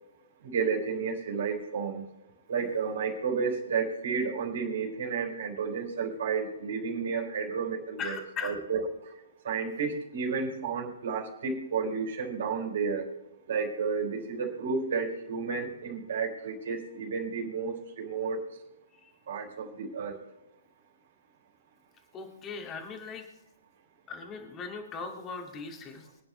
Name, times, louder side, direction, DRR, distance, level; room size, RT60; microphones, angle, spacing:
voice 1, 0.4-2.0 2.5-8.2 8.4-8.8 9.4-13.0 13.5-18.4 19.3-20.2, right 5 dB, 60° right, 0 dB, 4.2 m, -31 dB
voice 2, 8.0-8.6 22.1-23.2 24.1-26.2, left 5 dB, 20° left, 2 dB, 2.4 m, -39 dB
24.5 x 9.7 x 3.3 m, 1.0 s
figure-of-eight pair, 125°, 0 cm